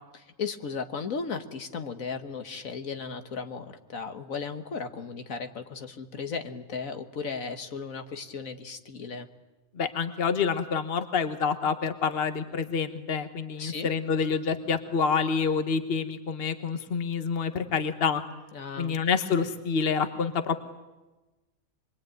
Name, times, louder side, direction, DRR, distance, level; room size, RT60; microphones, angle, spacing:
voice 1, 0.1-9.3 13.6-13.9 18.5-19.0, left 5 dB, 70° left, 7 dB, 1.8 m, -36 dB
voice 2, 9.7-18.2 18.8-20.6, left 5 dB, 45° left, 9 dB, 1.5 m, -27 dB
25.5 x 23.0 x 9.2 m, 1.1 s
omnidirectional pair, 1.5 m